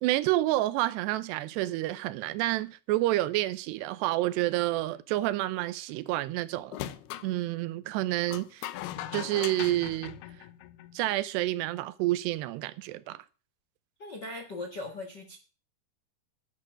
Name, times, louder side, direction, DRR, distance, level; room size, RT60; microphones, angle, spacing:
voice 1, 0.0-6.8 7.2-8.7 9.1-10.2 10.9-13.2, right 16 dB, 85° right, 2.9 m, -29 dB
sound 1, 6.7-7.3 8.3-11.0, left 13 dB, 75° left, 2.7 m, -39 dB
voice 2, 14.0-15.4, left 2 dB, 50° left, 1.2 m, -39 dB
11.0 x 9.3 x 6.3 m
omnidirectional pair, 4.8 m